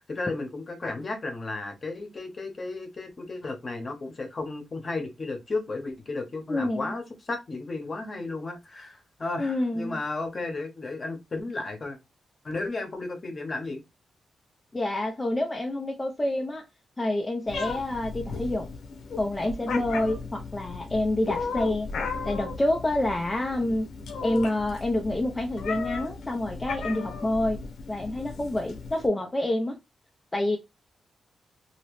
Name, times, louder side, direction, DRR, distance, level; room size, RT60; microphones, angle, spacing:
voice 1, 0.0-12.0 12.4-13.8, left 3 dB, 35° left, 1.0 m, -34 dB
voice 2, 6.5-6.9 9.4-10.0 14.7-16.6 17.0-18.7 19.2-21.9 22.2-23.9 24.2-27.6 27.9-29.7 30.3-30.6, left 1 dB, 15° left, 0.6 m, -27 dB
Meow, 17.5-29.1, left 4 dB, 80° left, 0.8 m, -36 dB
3.0 x 2.9 x 3.0 m
wide cardioid pair, 120°, 0 cm